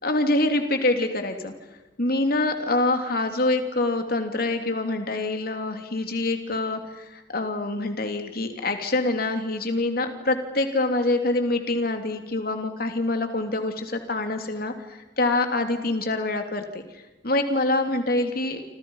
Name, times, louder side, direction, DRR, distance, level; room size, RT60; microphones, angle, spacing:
voice 1, 0.0-1.5 2.0-16.8 17.2-18.6, left 2 dB, 55° left, 6 dB, 3.1 m, -25 dB
29.0 x 26.5 x 5.7 m, 1.1 s
head